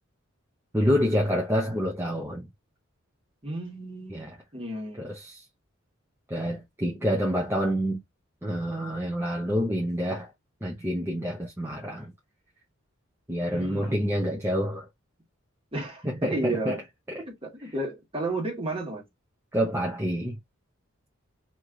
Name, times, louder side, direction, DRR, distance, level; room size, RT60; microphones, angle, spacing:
voice 1, 0.7-2.5 4.1-4.3 5.0-5.4 6.3-8.0 8.4-10.3 10.6-12.1 13.3-14.9 16.0-16.7 17.1-17.2 19.5-20.4, equal, 10° right, 0.7 m, -27 dB
voice 2, 3.4-4.3 4.5-5.0 13.5-14.1 15.7-16.8 17.3-19.0, right 2 dB, 25° right, 1.6 m, -32 dB
3.2 x 2.9 x 3.7 m
head